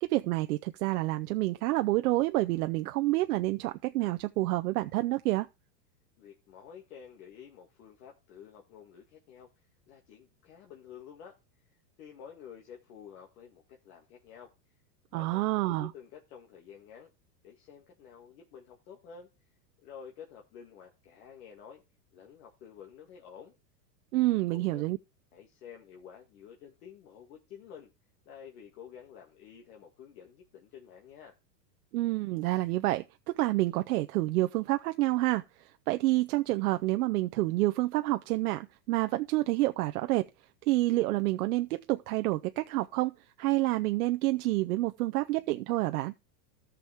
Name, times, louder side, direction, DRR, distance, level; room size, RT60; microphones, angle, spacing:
voice 1, 0.0-5.5 15.1-15.9 24.1-25.0 31.9-40.3 40.6-46.1, right 18 dB, 65° right, 0.6 m, -28 dB
voice 2, 6.2-9.5 9.9-11.4 12.0-14.5 15.1-17.1 17.4-19.3 19.8-21.8 22.1-23.5 24.3-24.8 25.3-27.9 28.3-31.4, left 7 dB, 65° left, 2.2 m, -50 dB
14.0 x 6.1 x 3.5 m
supercardioid pair, 135°, 48 cm